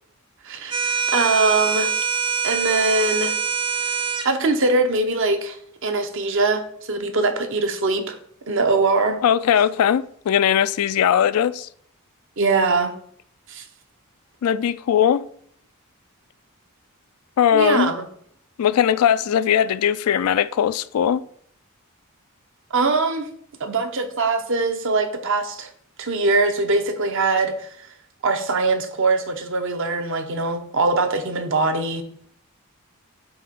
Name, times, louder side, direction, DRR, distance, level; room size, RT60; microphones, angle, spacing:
voice 1, 0.4-1.9 2.4-3.4 3.8-5.6 5.8-8.2 8.5-9.2 12.4-12.9 13.5-13.6 17.5-18.1 22.7-23.3 23.6-25.7 26.0-27.9 28.2-32.0, right 3 dB, 60° right, 0.8 m, -22 dB
sound 1, 0.7-4.3, right 6 dB, 20° right, 0.5 m, -24 dB
voice 2, 9.2-11.7 14.4-15.2 17.4-17.9 18.6-21.2, left 9 dB, 80° left, 0.3 m, -19 dB
7.9 x 2.9 x 5.3 m
head